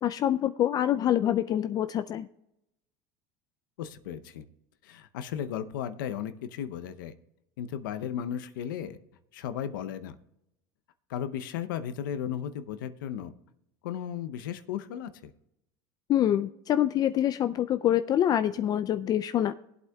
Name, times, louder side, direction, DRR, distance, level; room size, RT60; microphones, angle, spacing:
voice 1, 0.0-2.3 16.1-19.5, left 11 dB, 40° left, 11 dB, 0.4 m, -26 dB
voice 2, 3.8-4.4 4.8-7.1 7.6-9.0 9.3-10.1 11.1-13.3 13.8-15.3, left 9 dB, 90° left, 10 dB, 0.7 m, -35 dB
19.0 x 8.2 x 2.3 m, 0.85 s
supercardioid pair, 110°, 11 cm